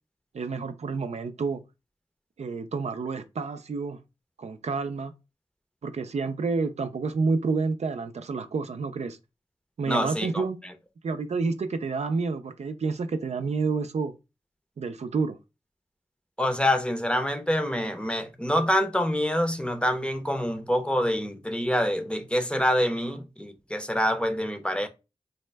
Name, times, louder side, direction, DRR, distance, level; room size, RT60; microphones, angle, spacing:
voice 1, 0.3-1.6 2.4-4.0 4.4-5.1 5.8-9.2 9.8-10.6 11.0-14.1 14.8-15.4, right 4 dB, 75° right, 0.4 m, -29 dB
voice 2, 9.9-10.4 16.4-24.9, equal, 10° left, 0.6 m, -26 dB
4.1 x 2.1 x 3.2 m
cardioid pair, 45°, 11 cm